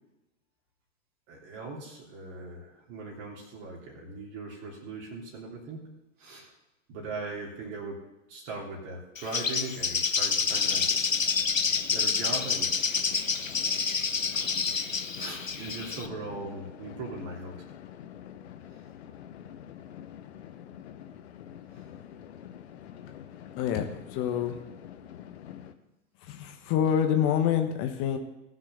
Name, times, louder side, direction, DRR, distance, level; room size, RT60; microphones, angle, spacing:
voice 1, 1.3-6.5 6.9-8.0 8.3-10.9 11.9-12.8 15.1-17.6 21.7-21.8, right 3 dB, 40° right, -3 dB, 3.3 m, -39 dB
Bird, 9.2-16.1, left 5 dB, 90° left, 0.8 m, -28 dB
sound 1, 10.5-25.7, left 10 dB, 55° left, 1.1 m, -46 dB
voice 2, 23.6-24.6 26.2-28.2, left 9 dB, 35° left, 6 dB, 1.4 m, -27 dB
18.0 x 6.2 x 6.7 m, 0.98 s
figure-of-eight pair, 95°, 38 cm